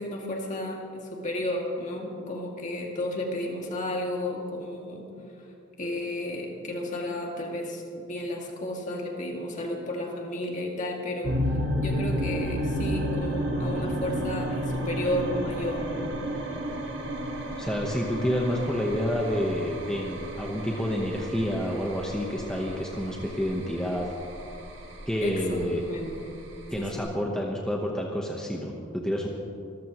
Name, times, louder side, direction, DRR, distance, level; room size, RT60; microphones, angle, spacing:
voice 1, 0.0-5.1 5.8-16.2 25.2-26.4 26.8-27.1, left 1 dB, 40° left, -1 dB, 2.3 m, -33 dB
sound 1, 11.2-27.0, equal, 65° right, 1.9 m, -32 dB
voice 2, 17.6-24.1 25.1-25.8 26.7-29.3, equal, 5° left, -1 dB, 1.0 m, -29 dB
25.5 x 14.0 x 3.1 m, 2.5 s
head